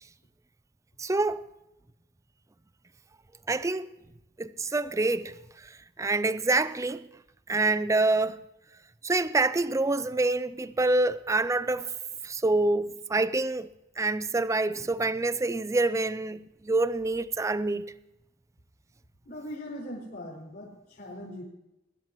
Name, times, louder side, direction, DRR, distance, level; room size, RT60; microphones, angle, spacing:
voice 1, 1.0-1.4 3.5-3.9 4.4-5.3 5.6-7.1 7.5-8.4 9.0-11.9 12.2-13.7 14.0-17.9, right 2 dB, 15° right, 0.4 m, -26 dB
voice 2, 19.2-21.4, equal, 60° left, 4.9 m, -40 dB
23.0 x 12.0 x 3.1 m
head